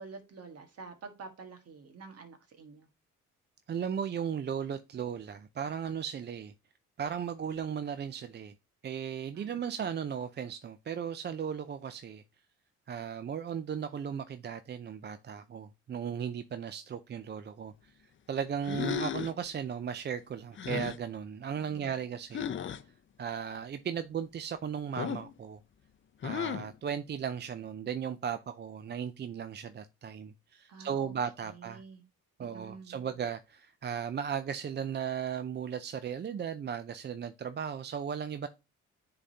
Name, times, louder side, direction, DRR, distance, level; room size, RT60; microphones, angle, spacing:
voice 1, 0.0-2.9 9.3-9.6 21.5-22.0 30.7-31.1 31.4-32.0 32.4-33.0, right 4 dB, 55° right, 1.7 m, -48 dB
voice 2, 3.7-6.5 7.0-8.5 8.8-12.2 12.9-17.9 18.3-22.7 23.2-25.6 26.2-31.8 32.4-38.5, right 7 dB, 35° right, 0.5 m, -36 dB
sound 1, 18.6-19.4 20.6-21.0 22.3-22.8 25.0-25.3 26.2-26.7, left 8 dB, 40° left, 0.6 m, -35 dB
9.7 x 4.0 x 2.8 m
cardioid pair, 90°, 30 cm